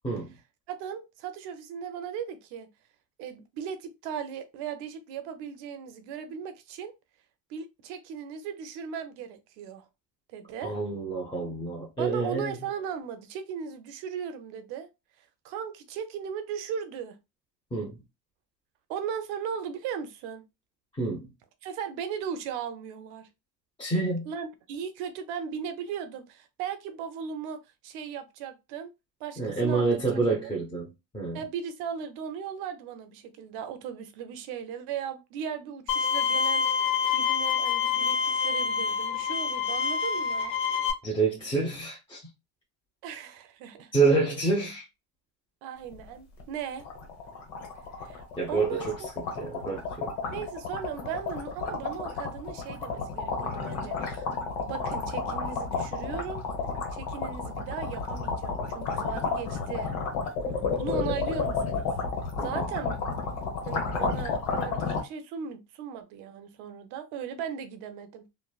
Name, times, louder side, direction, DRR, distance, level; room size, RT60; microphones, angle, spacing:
voice 1, 0.7-2.7 3.2-6.9 7.5-9.9 10.3-10.7 12.0-14.9 15.2-17.2 18.9-20.4 21.6-23.3 24.3-28.9 29.2-30.6 31.3-36.6 37.1-40.5 43.0-43.9 45.6-46.9 48.0-49.1 50.3-54.3 54.6-56.4 56.9-59.9 60.7-61.9 62.4-62.9 63.6-68.3, right 7 dB, 70° right, 0.7 m, -37 dB
voice 2, 10.6-12.6 17.7-18.0 20.9-21.3 23.8-24.3 29.4-31.4 41.0-42.2 43.9-44.9 48.4-50.1 62.4-62.6, right 3 dB, 10° left, 0.7 m, -28 dB
Bowed string instrument, 35.9-40.9, left 6 dB, 50° left, 0.9 m, -27 dB
sound 1, 45.9-46.1 46.4-46.5 46.8-65.0, left 4 dB, 90° left, 1.1 m, -31 dB
3.1 x 2.1 x 2.3 m
supercardioid pair, 110°, 42 cm